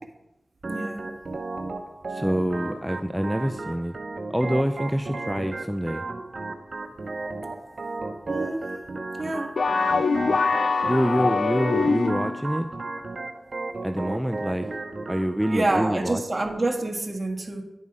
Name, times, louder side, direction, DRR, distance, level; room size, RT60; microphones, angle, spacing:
voice 1, 0.6-1.1 8.3-8.7 9.2-9.5 15.5-17.6, right 2 dB, 40° right, 2 dB, 1.6 m, -27 dB
Organ, 0.6-15.6, right 3 dB, 60° right, 0.9 m, -34 dB
voice 2, 2.1-3.9 4.3-6.0 10.8-12.7 13.8-14.7 15.1-16.2, equal, 5° right, 7 dB, 0.4 m, -26 dB
sound 1, 9.6-12.4, left 4 dB, 85° left, 0.4 m, -23 dB
11.0 x 5.5 x 4.9 m, 0.92 s
cardioid pair, 50°, 0 cm